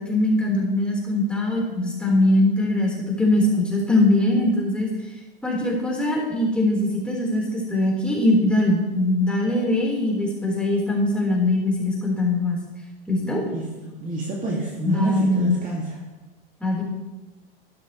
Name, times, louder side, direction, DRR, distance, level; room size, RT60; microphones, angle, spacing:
voice 1, 0.0-4.9 5.4-12.6 13.1-13.4 14.8-15.5 16.6-16.8, left 1 dB, 5° left, -4 dB, 4.1 m, -21 dB
voice 2, 13.5-15.8, right 1 dB, 25° right, -2 dB, 2.3 m, -28 dB
12.5 x 12.0 x 3.2 m, 1.1 s
hypercardioid pair, 105°, 29 cm